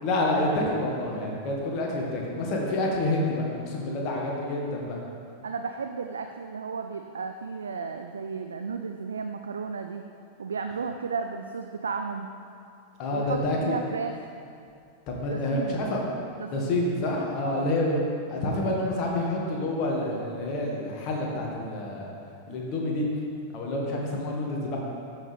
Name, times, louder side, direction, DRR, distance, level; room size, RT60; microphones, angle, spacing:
voice 1, 0.0-5.0 13.0-13.8 15.1-16.0 16.5-18.0 18.3-22.1 22.5-23.1 23.5-24.8, left 1 dB, 40° left, -1 dB, 1.8 m, -28 dB
voice 2, 5.4-10.0 10.4-12.3 13.1-14.2 15.3-15.9 16.4-16.8 17.4-17.7, right 5 dB, 70° right, 6 dB, 0.4 m, -34 dB
13.0 x 6.3 x 3.4 m, 2.4 s
figure-of-eight pair, 90°, 0 cm